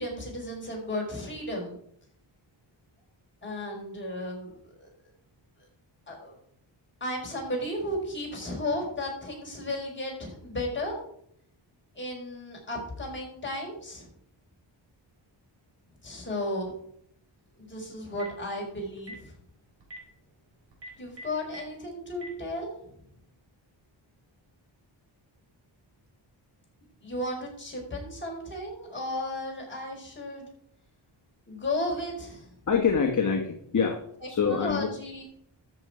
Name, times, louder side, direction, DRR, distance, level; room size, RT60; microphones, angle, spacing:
voice 1, 0.0-1.7 3.4-4.5 4.8-4.9 6.1-6.3 7.0-11.0 12.0-14.1 16.0-16.7 17.6-19.3 21.0-22.7 27.0-30.5 31.5-32.5 34.4-35.2, left 1 dB, 25° left, -2 dB, 4.8 m, -34 dB
Telephone, 17.9-18.4 19.0-19.2 19.8-20.0 20.7-21.6 22.1-22.3, left 1 dB, 65° right, 4.2 m, -42 dB
voice 2, 32.7-34.9, left 6 dB, 40° left, 2 dB, 1.4 m, -26 dB
13.0 x 7.0 x 4.9 m, 0.67 s
wide cardioid pair, 125°, 46 cm